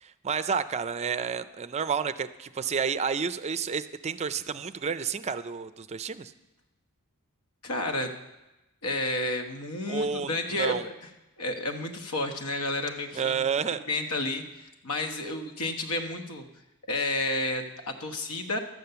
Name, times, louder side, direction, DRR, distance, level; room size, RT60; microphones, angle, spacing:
voice 1, 0.0-6.3 9.9-10.9 13.1-13.8, right 6 dB, 30° right, 13 dB, 0.4 m, -30 dB
voice 2, 7.6-8.1 8.8-10.9 11.4-13.4 13.9-16.4 16.9-18.6, left 2 dB, 80° left, 5 dB, 1.3 m, -31 dB
12.0 x 8.7 x 6.8 m, 1.0 s
head